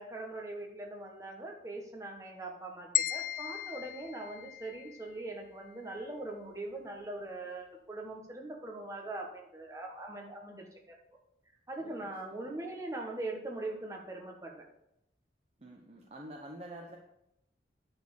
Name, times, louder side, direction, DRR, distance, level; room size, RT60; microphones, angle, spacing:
voice 1, 0.0-10.9 11.7-14.6, right 2 dB, 15° right, 0 dB, 1.3 m, -41 dB
sound 1, 2.9-5.1, left 13 dB, 50° left, 0.3 m, -35 dB
voice 2, 11.8-12.5 15.6-17.0, right 1 dB, 35° right, 0 dB, 0.9 m, -48 dB
10.5 x 4.4 x 6.5 m, 0.82 s
head